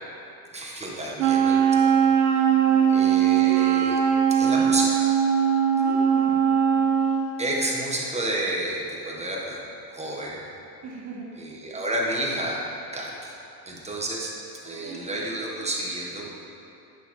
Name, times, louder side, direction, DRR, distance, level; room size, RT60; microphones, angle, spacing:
voice 1, 0.5-2.0 2.2-2.6 2.9-4.0 4.3-5.2 7.4-9.6 9.9-10.4 11.4-12.6 12.9-13.4 13.6-16.3, right 1 dB, 15° right, -3 dB, 1.4 m, -30 dB
Wind instrument woodwind instrument, 1.2-7.3, right 8 dB, 60° right, 1.2 m, -20 dB
voice 2, 2.5-2.9 5.7-6.9 10.8-11.3 14.6-15.1, right 4 dB, 35° right, -2 dB, 1.3 m, -40 dB
9.1 x 6.6 x 3.2 m, 2.9 s
supercardioid pair, 100°, 48 cm